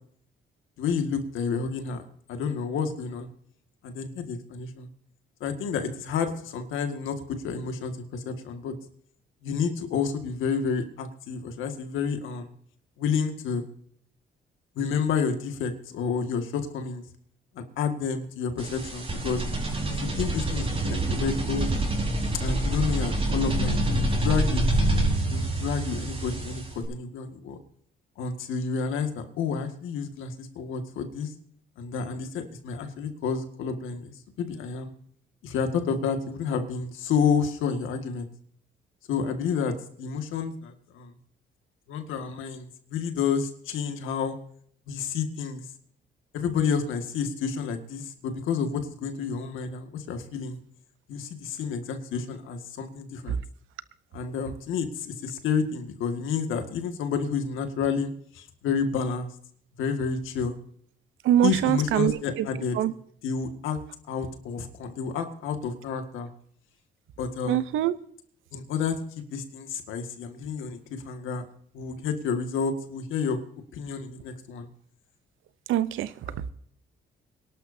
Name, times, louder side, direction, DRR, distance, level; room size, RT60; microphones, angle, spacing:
voice 1, 0.8-3.3 3.8-4.9 5.4-8.7 9.4-12.5 13.0-13.7 14.8-17.0 17.6-19.4 19.9-21.7 22.3-24.6 25.3-26.6 26.9-27.6 28.2-31.3 31.8-34.1 34.4-34.9 35.4-38.3 39.1-41.1 41.9-44.4 44.9-45.6 46.3-50.6 51.1-53.4 54.1-59.3 59.8-60.5 61.4-62.8 63.2-63.8 64.1-66.3 67.2-67.6 68.5-71.4 71.7-73.4 73.7-74.7 76.3-76.5, left 6 dB, 85° left, 1.9 m, -30 dB
sound 1, 18.6-26.8, right 1 dB, 30° right, 4.7 m, -26 dB
voice 2, 61.2-62.5 62.7-62.9 67.5-68.0 75.7-76.1, right 11 dB, 85° right, 0.8 m, -23 dB
24.0 x 12.0 x 2.7 m
cardioid pair, 90°, 20 cm